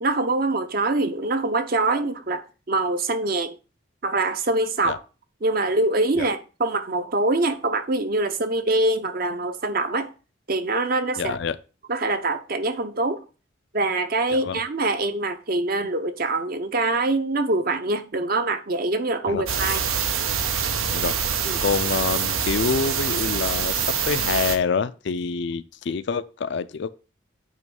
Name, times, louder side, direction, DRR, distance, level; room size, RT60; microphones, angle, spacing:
voice 1, 0.0-3.6 4.0-5.0 5.4-10.1 10.5-11.4 11.9-13.2 13.7-19.8 21.5-21.6, right 2 dB, 45° right, 0.7 m, -24 dB
voice 2, 11.2-11.6 14.3-14.6 19.3-19.4 20.9-21.1 21.6-26.9, left 5 dB, 55° left, 0.4 m, -26 dB
sound 1, 19.5-24.6, right 7 dB, 90° right, 0.9 m, -25 dB
9.2 x 3.1 x 5.2 m
head